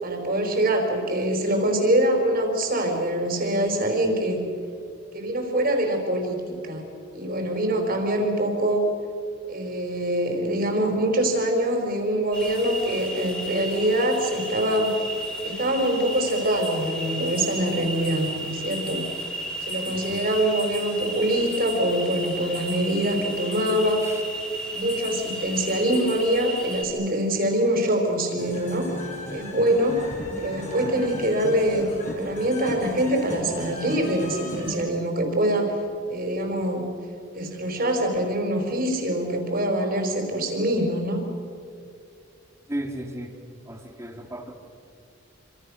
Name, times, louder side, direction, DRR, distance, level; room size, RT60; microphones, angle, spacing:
voice 1, 0.0-4.4 5.1-6.9 7.1-8.8 9.5-14.9 15.4-19.0 19.7-24.0 24.7-28.9 29.3-30.1 30.3-35.8 36.1-36.9 37.3-41.2, right 1 dB, 50° right, 4 dB, 4.9 m, -24 dB
sound 1, 12.3-26.8, right 1 dB, 5° left, 4.7 m, -34 dB
voice 2, 19.9-20.2 24.0-24.2 42.7-43.3 43.7-44.5, right 1 dB, 15° right, 3 dB, 2.7 m, -35 dB
sound 2, 28.4-34.8, left 1 dB, 40° left, 5.5 m, -36 dB
27.5 x 26.5 x 6.6 m, 2.4 s
head